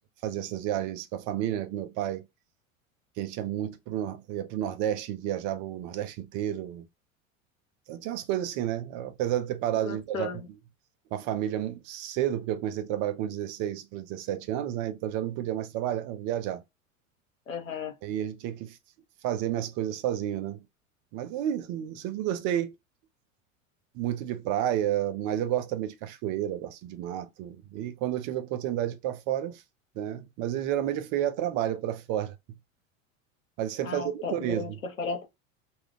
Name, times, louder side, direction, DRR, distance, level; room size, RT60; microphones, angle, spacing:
voice 1, 0.2-2.3 3.2-6.9 7.9-10.4 11.1-16.6 18.0-18.8 19.2-20.6 21.1-22.7 23.9-29.6 30.0-32.6 33.6-34.8, right 11 dB, 50° right, 0.6 m, -31 dB
voice 2, 9.8-10.5 17.5-17.9 33.8-35.2, left 4 dB, 85° left, 0.9 m, -35 dB
2.3 x 2.3 x 3.5 m
hypercardioid pair, 85°, 40 cm